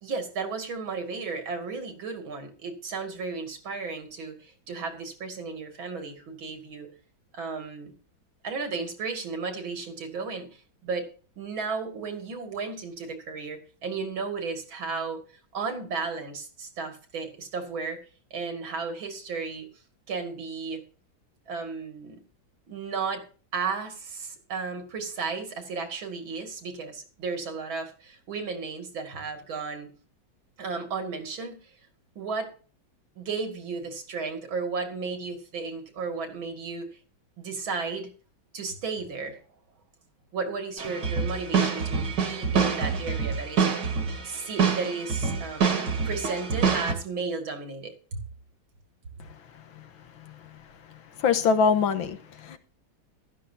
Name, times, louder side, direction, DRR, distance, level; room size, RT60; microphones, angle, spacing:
voice 1, 0.0-6.9 7.3-7.9 8.4-10.5 10.8-11.1 11.4-15.2 15.5-18.0 18.3-19.7 20.1-20.8 21.5-22.2 22.7-23.2 23.5-29.9 30.6-31.7 32.2-32.5 33.2-36.9 37.4-38.1 38.5-39.4 40.3-43.8 44.2-48.2, right 4 dB, 75° right, 3.1 m, -34 dB
sound 1, 40.8-46.9, right 6 dB, 60° right, 2.3 m, -26 dB
voice 2, 51.2-52.6, left 5 dB, 80° left, 1.9 m, -24 dB
15.0 x 12.0 x 2.8 m
omnidirectional pair, 2.2 m